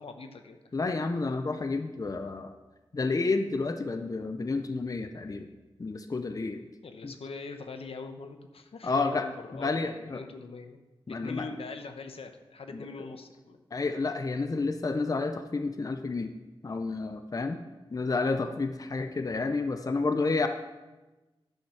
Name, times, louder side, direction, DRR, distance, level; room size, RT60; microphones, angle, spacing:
voice 1, 0.0-0.6 6.8-10.8 11.1-13.6, left 4 dB, 80° left, 6 dB, 0.9 m, -42 dB
voice 2, 0.7-2.5 2.9-5.5 5.8-6.6 7.0-7.1 8.8-10.2 11.1-11.5 12.7-13.1 13.7-16.3 16.6-17.6 17.9-20.5, left 3 dB, 40° left, 7 dB, 0.5 m, -30 dB
10.5 x 5.7 x 5.7 m, 1.1 s
wide cardioid pair, 110°, 10 cm